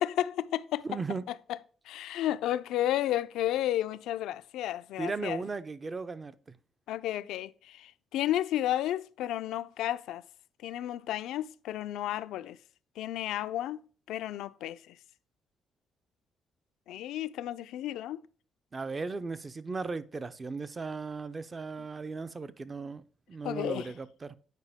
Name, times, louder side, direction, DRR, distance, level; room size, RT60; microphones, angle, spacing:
voice 1, 0.0-0.9 1.3-1.6 1.9-5.4 6.9-10.2 10.6-12.6 13.0-13.8 14.1-15.0 16.9-18.2 23.4-23.9, left 12 dB, 85° left, 0.4 m, -32 dB
voice 2, 0.9-1.2 5.0-6.6 18.7-23.0 23.3-24.4, right 4 dB, 30° right, 0.6 m, -36 dB
9.2 x 5.0 x 3.5 m
cardioid pair, 90°, 0 cm